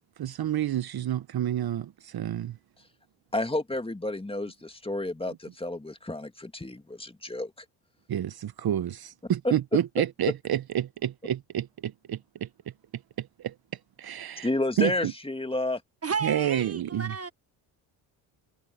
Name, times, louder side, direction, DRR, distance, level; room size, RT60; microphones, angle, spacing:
voice 1, 0.0-2.6 8.1-12.5 12.9-13.5 14.0-14.5 14.8-15.1 16.2-17.2, right 11 dB, 50° right, 1.1 m, -29 dB
voice 2, 3.3-7.5 9.4-9.5 14.4-15.8, left 1 dB, 10° left, 2.3 m, -30 dB
voice 3, 16.0-17.3, right 6 dB, 30° right, 1.5 m, -32 dB
supercardioid pair, 55°, 46 cm